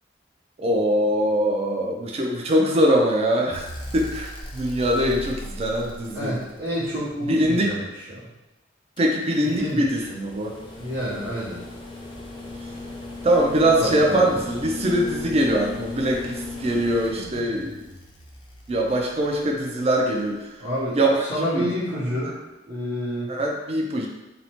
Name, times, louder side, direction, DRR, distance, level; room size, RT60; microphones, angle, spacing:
voice 1, 0.6-3.7 3.9-6.4 7.3-7.7 9.0-10.5 13.2-17.9 18.7-20.6 20.9-21.2 21.5-21.7 23.3-24.1, right 1 dB, 35° right, 0 dB, 0.4 m, -22 dB
sound 1, 3.5-7.7 9.0-20.2 21.7-21.8, left 2 dB, 30° left, 0.4 m, -37 dB
voice 2, 6.1-8.3 9.4-9.9 10.8-11.6 13.6-14.7 20.6-22.3 22.7-23.3, equal, 65° right, -13 dB, 1.0 m, -29 dB
2.7 x 2.0 x 2.9 m, 1.0 s
head